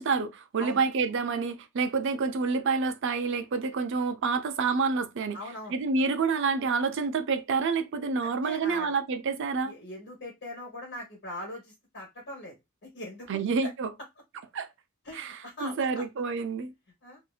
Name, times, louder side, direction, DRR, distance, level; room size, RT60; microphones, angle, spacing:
voice 1, 0.0-5.4 5.7-9.7 13.3-13.9 14.5-14.7 15.1-16.7, right 4 dB, 60° right, 0.4 m, -28 dB
voice 2, 5.3-5.8 8.2-8.9 9.6-12.5 12.8-13.7 15.0-16.1 17.0-17.2, left 1 dB, 60° left, 1.2 m, -41 dB
2.7 x 2.5 x 2.3 m
head